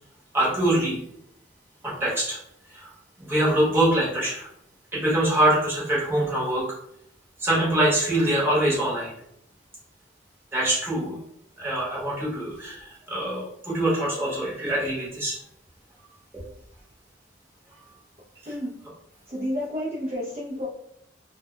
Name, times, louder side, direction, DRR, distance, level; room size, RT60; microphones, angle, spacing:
voice 1, 0.3-1.0 1.8-2.4 2.7-2.9 3.2-4.5 4.9-6.6 7.4-9.1 10.5-11.2 11.6-15.3 16.3-16.4, right 1 dB, 10° right, -6 dB, 0.9 m, -24 dB
voice 2, 19.3-20.7, equal, 30° right, -6 dB, 0.4 m, -30 dB
2.1 x 2.1 x 3.6 m, 0.74 s
head